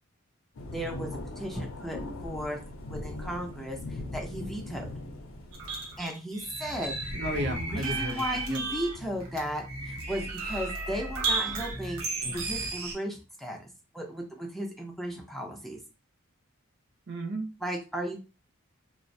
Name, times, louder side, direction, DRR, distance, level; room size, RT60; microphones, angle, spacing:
sound 1, 0.6-6.0, left 1 dB, 65° left, 0.5 m, -40 dB
voice 1, 0.7-1.1 1.4-2.6 2.9-4.9 6.0-6.9 7.7-12.0 12.3-13.6 13.9-15.8 17.6-18.2, equal, ahead, 0 dB, 0.3 m, -35 dB
sound 2, 5.5-12.9, right 3 dB, 85° right, 0.7 m, -34 dB
voice 2, 7.2-8.6 17.1-17.5, right 1 dB, 50° right, 3 dB, 0.5 m, -33 dB
2.3 x 2.1 x 2.6 m, 0.31 s
head